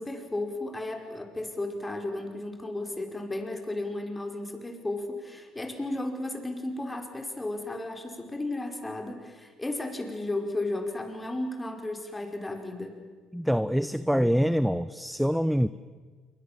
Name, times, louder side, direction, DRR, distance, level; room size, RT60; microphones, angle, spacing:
voice 1, 0.0-13.0, left 2 dB, 15° left, 5 dB, 4.9 m, -34 dB
voice 2, 13.3-15.7, equal, ahead, 14 dB, 0.8 m, -25 dB
27.5 x 23.5 x 7.5 m, 1.5 s
hypercardioid pair, 60°, 0 cm